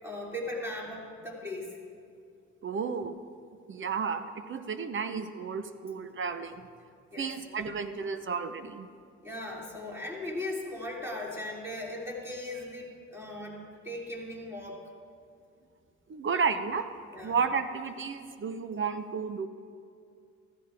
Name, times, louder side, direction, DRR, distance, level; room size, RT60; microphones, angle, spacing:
voice 1, 0.0-1.8 7.1-7.3 9.2-14.8 17.1-17.4, left 1 dB, 10° right, -3 dB, 3.3 m, -38 dB
voice 2, 2.6-3.2 3.7-6.7 7.2-8.9 16.1-16.9 17.2-19.5, right 5 dB, 40° right, 10 dB, 0.8 m, -32 dB
15.0 x 14.5 x 3.5 m, 2.3 s
cardioid pair, 90°, 30 cm